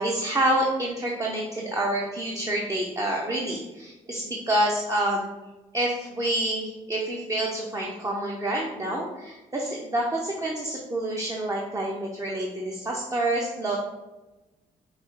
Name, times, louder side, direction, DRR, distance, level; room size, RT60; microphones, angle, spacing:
voice 1, 0.0-5.3 5.7-13.8, right 1 dB, 25° right, -2 dB, 0.7 m, -27 dB
4.9 x 2.3 x 3.7 m, 1.1 s
cardioid pair, 80°, 15 cm